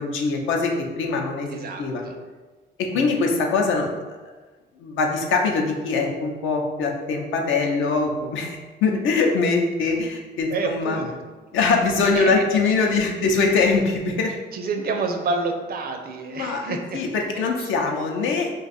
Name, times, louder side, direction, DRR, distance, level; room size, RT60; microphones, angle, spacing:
voice 1, 0.0-1.5 1.8-2.1 2.8-4.2 4.8-11.0 11.5-14.4 16.3-18.5, left 4 dB, 75° left, 2 dB, 0.6 m, -23 dB
voice 2, 1.5-2.2 2.9-3.1 10.5-11.1 12.1-12.4 14.5-17.0 17.3-17.7, right 4 dB, 50° right, 4 dB, 0.5 m, -28 dB
2.5 x 2.3 x 4.0 m, 1.3 s
cardioid pair, 90°, 20 cm